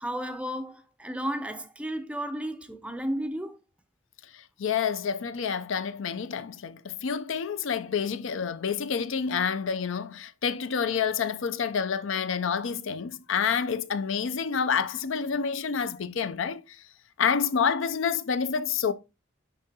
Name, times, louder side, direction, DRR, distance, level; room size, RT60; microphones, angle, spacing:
voice 1, 0.0-3.6, equal, 5° right, 0.5 m, -33 dB
voice 2, 4.3-16.8 17.2-18.9, left 6 dB, 70° left, 0.5 m, -28 dB
10.0 x 3.7 x 2.8 m
head